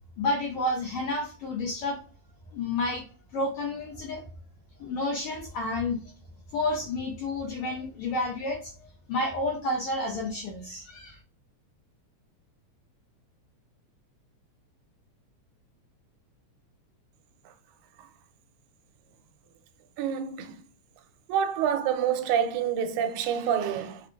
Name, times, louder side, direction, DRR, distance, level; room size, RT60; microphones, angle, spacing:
voice 1, 0.2-2.0 2.5-3.0 3.3-4.2 4.8-6.0 6.5-8.7 9.1-11.2, left 2 dB, 75° left, 1.4 m, -30 dB
voice 2, 20.0-20.5 21.3-24.0, right 8 dB, 85° right, 2.0 m, -27 dB
4.8 x 2.4 x 2.2 m
omnidirectional pair, 3.4 m